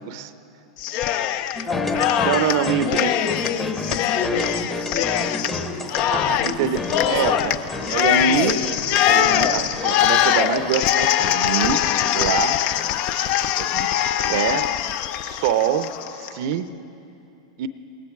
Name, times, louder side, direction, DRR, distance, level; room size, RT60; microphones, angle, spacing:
Cheering, 0.8-1.6 1.9-16.3, left 11 dB, 50° left, 0.4 m, -22 dB
voice 1, 1.6-7.4 8.2-8.7, left 4 dB, 30° left, 2 dB, 1.9 m, -31 dB
sound 1, 1.6-14.2, left 2 dB, 15° left, 1.0 m, -32 dB
voice 2, 2.3-3.2 6.1-7.6 7.9-8.6 9.1-11.8 12.1-12.6 13.1-14.7 15.2-16.7 17.6-17.7, right 8 dB, 60° right, 13 dB, 0.5 m, -25 dB
19.0 x 10.0 x 4.7 m, 2.8 s
hypercardioid pair, 95°, 2 cm